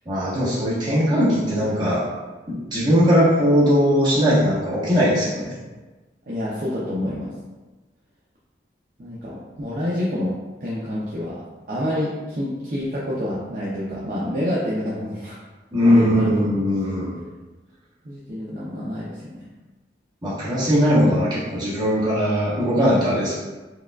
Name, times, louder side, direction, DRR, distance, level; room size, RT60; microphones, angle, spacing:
voice 1, 0.0-2.0 2.5-5.5 15.7-17.2 20.2-23.3, equal, 25° right, -10 dB, 1.2 m, -19 dB
voice 2, 6.3-7.3 9.0-10.3 10.6-15.4 15.8-17.1 18.0-19.5, left 1 dB, 45° right, -7 dB, 0.5 m, -28 dB
4.7 x 2.3 x 2.3 m, 1.2 s
head